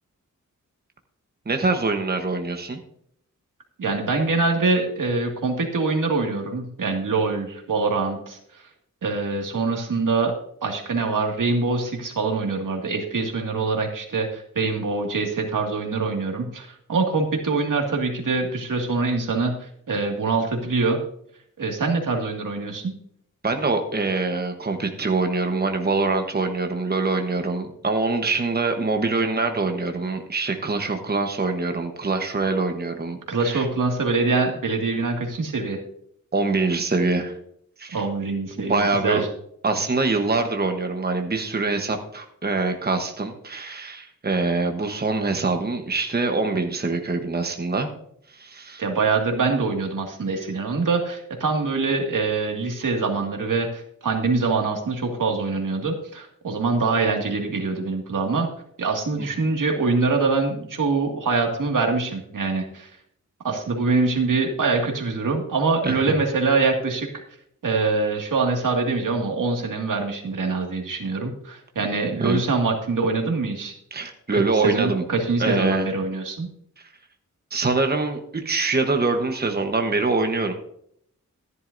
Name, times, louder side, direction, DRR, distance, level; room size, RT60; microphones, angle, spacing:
voice 1, 1.5-2.8 23.4-33.7 36.3-37.4 37.8-38.0 38.7-39.2 39.6-47.9 48.3-48.8 59.2-59.3 65.8-66.0 72.2-72.4 73.9-75.0 75.4-75.9 77.5-80.5, right 3 dB, 30° right, 5 dB, 1.1 m, -24 dB
voice 2, 3.8-8.4 9.0-10.3 10.6-21.0 21.6-22.9 33.3-35.8 37.9-39.3 48.8-58.5 58.8-62.9 63.4-67.1 67.6-73.7 74.3-76.5, right 3 dB, 85° right, 2 dB, 2.1 m, -24 dB
14.0 x 11.0 x 2.6 m, 0.68 s
wide cardioid pair, 105°, 31 cm